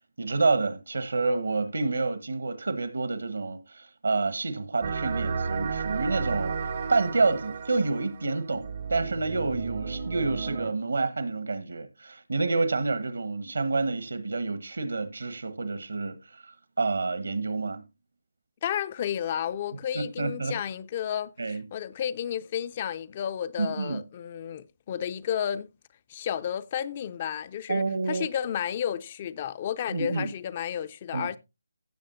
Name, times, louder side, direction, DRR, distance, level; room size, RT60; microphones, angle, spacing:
voice 1, 0.2-6.5 6.9-16.4 16.8-17.8 19.9-20.6 21.4-21.6 23.6-24.0 27.7-28.3 29.9-30.3 31.1-31.4, right 3 dB, 70° right, 1.4 m, -28 dB
sound 1, 4.8-10.7, right 5 dB, 45° right, 0.8 m, -33 dB
voice 2, 18.6-25.7 26.1-31.4, left 9 dB, 30° left, 0.5 m, -32 dB
16.5 x 7.3 x 2.7 m
figure-of-eight pair, 150°, 0 cm